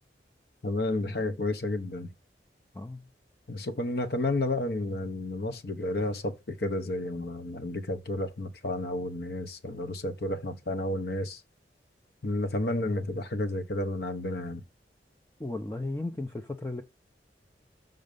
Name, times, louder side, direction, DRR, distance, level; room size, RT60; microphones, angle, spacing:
voice 1, 0.6-2.1 3.5-11.4 12.2-14.6, left 2 dB, 60° left, 0.8 m, -31 dB
voice 2, 2.7-3.1 15.4-16.8, left 2 dB, 15° left, 0.4 m, -35 dB
6.4 x 3.8 x 5.2 m
head